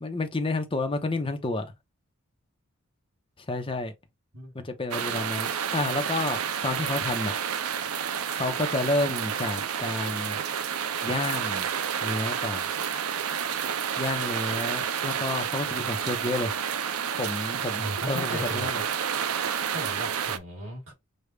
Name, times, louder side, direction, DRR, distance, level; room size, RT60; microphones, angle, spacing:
voice 1, 0.0-1.7 3.4-3.9 4.5-7.6 8.3-10.4 11.0-11.7 12.0-12.7 14.0-16.5 17.2-18.8, left 2 dB, 25° left, 0.8 m, -30 dB
voice 2, 4.3-4.7 17.8-18.7 19.7-20.9, equal, 70° right, 3.3 m, -36 dB
sound 1, 4.9-20.4, right 8 dB, 90° right, 0.6 m, -30 dB
6.6 x 2.4 x 3.3 m
head